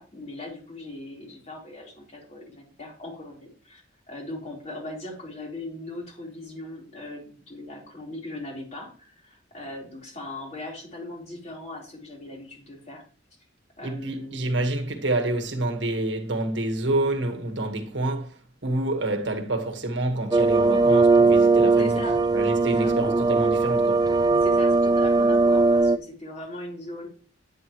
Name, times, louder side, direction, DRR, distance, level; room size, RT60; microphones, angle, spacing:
voice 1, 0.0-13.0 13.8-14.5 21.8-22.2 22.6-22.9 24.4-27.1, left 1 dB, 35° left, 4.3 m, -39 dB
voice 2, 13.8-18.3 18.6-22.0 22.3-24.1, right 2 dB, 70° right, 1.6 m, -27 dB
sound 1, 20.3-26.0, right 3 dB, 20° right, 0.4 m, -19 dB
11.0 x 9.9 x 3.1 m
head